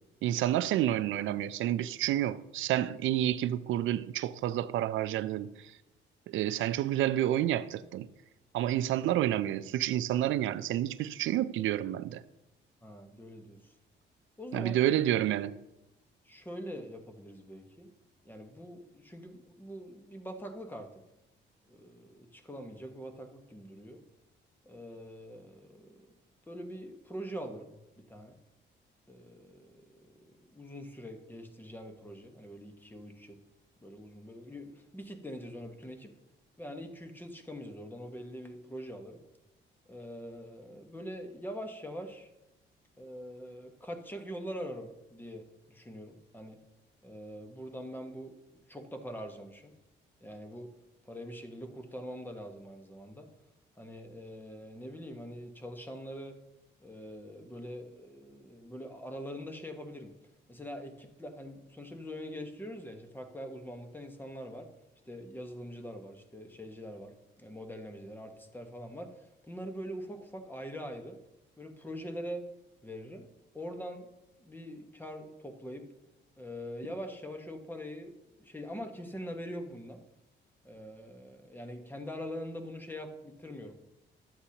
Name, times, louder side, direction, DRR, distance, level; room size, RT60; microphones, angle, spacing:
voice 1, 0.2-5.5 6.3-8.1 8.5-12.2 14.5-15.5, right 12 dB, 80° right, 0.5 m, -29 dB
voice 2, 12.8-13.7 14.4-14.7 16.2-17.9 18.2-20.9 21.7-24.0 24.6-26.1 26.5-27.8 28.1-28.4 29.1-33.4 33.8-36.1 36.6-39.2 39.9-42.3 43.0-46.6 47.0-48.4 48.7-49.7 50.2-50.7 51.1-53.3 53.8-56.4 56.8-60.1 60.5-64.7 65.0-69.1 69.5-71.2 71.6-72.5 72.8-73.3 73.5-74.1 74.4-75.9 76.4-80.0 80.6-83.7, equal, 10° left, 1.2 m, -43 dB
11.5 x 7.9 x 2.8 m
cardioid pair, 90°, 20 cm